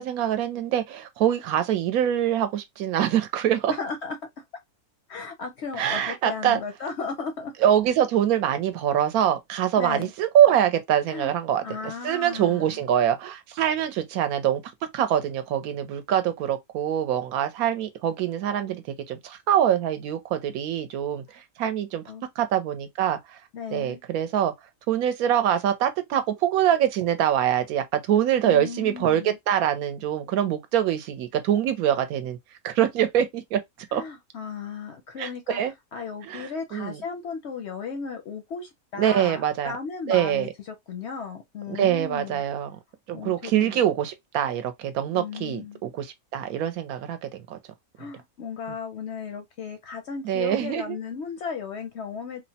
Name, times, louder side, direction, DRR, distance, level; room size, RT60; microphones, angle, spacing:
voice 1, 0.0-3.7 5.8-6.6 7.6-14.6 14.9-22.0 22.4-23.4 23.7-24.5 24.9-32.4 32.6-33.6 33.9-34.0 35.2-35.7 36.2-37.0 38.9-39.8 40.1-40.5 41.7-42.8 43.1-47.6 50.2-51.0, right 10 dB, 75° right, 1.0 m, -24 dB
voice 2, 3.7-4.2 5.1-7.5 9.8-10.1 11.1-11.3 11.6-12.8 22.1-22.2 23.5-24.0 28.4-29.4 33.9-35.6 35.9-42.4 43.1-43.8 45.1-45.8 48.0-52.4, left 5 dB, 65° left, 0.7 m, -35 dB
3.1 x 2.1 x 2.7 m
omnidirectional pair, 1.6 m